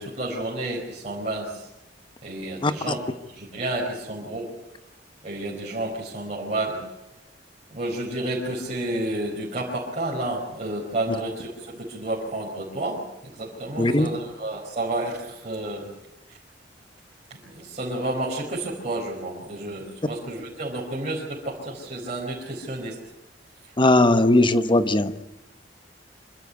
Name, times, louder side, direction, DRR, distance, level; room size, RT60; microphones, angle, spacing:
voice 1, 0.0-1.7 2.2-3.0 3.3-4.5 5.2-6.8 7.7-15.9 16.3-16.4 17.3-23.0 23.6-23.7, right 1 dB, 40° right, -5 dB, 5.0 m, -31 dB
voice 2, 13.8-14.1 23.8-25.1, left 2 dB, 30° left, 11 dB, 1.1 m, -18 dB
26.0 x 13.5 x 9.5 m, 0.96 s
head